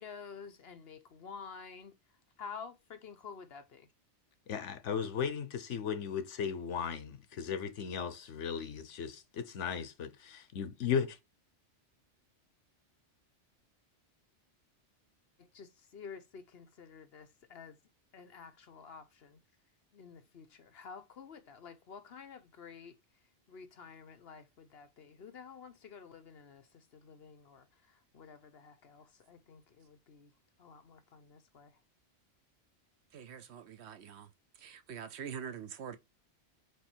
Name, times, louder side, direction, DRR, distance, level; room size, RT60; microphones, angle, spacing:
voice 1, 0.0-1.9 2.4-3.9 15.4-17.8 18.1-19.4 19.9-23.0 23.5-30.3 30.6-31.7, left 6 dB, 60° left, 1.0 m, -50 dB
voice 2, 4.5-11.2, left 7 dB, 80° left, 1.2 m, -36 dB
voice 3, 33.1-34.3 34.6-36.0, right 7 dB, 65° right, 0.9 m, -44 dB
8.0 x 3.1 x 4.5 m
omnidirectional pair, 1.2 m